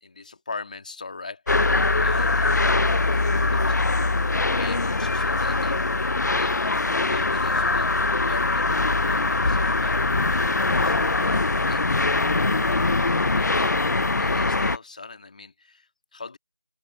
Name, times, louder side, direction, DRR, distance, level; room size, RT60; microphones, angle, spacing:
voice 1, 0.0-5.8 6.3-13.7 14.0-16.4, left 4 dB, 25° left, 2.4 m, -41 dB
sound 1, 1.5-14.8, left 3 dB, 65° left, 0.4 m, -22 dB
figure-of-eight pair, 170°, 10 cm